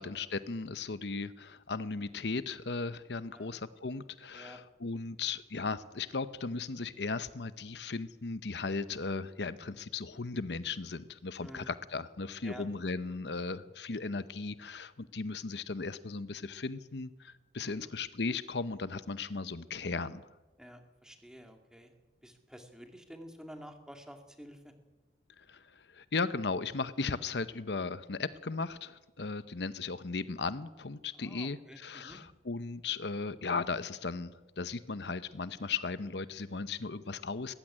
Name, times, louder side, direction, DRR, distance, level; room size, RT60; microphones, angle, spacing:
voice 1, 0.0-20.2 25.4-37.5, left 4 dB, 70° left, 14 dB, 0.8 m, -36 dB
voice 2, 20.6-21.9 22.2-24.7 31.1-32.2, equal, 5° right, 5 dB, 2.3 m, -50 dB
20.0 x 15.0 x 9.9 m, 1.2 s
head